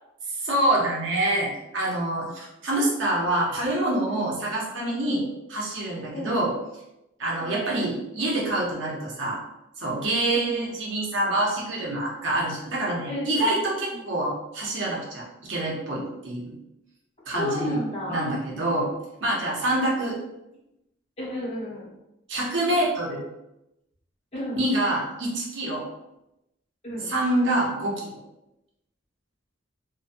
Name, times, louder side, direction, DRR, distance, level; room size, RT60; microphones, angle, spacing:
voice 1, 0.4-5.2 5.5-6.5 7.2-9.4 9.8-16.5 17.3-17.8 18.1-18.9 19.2-20.2 22.3-23.2 24.5-25.8 27.0-28.2, right 1 dB, 60° right, -4 dB, 0.8 m, -26 dB
voice 2, 10.3-10.7 13.1-13.6 13.9-14.0 17.3-18.3 21.2-21.9 24.3-24.6 26.8-27.1, equal, 30° left, -6 dB, 0.8 m, -33 dB
3.0 x 2.2 x 2.5 m, 0.91 s
head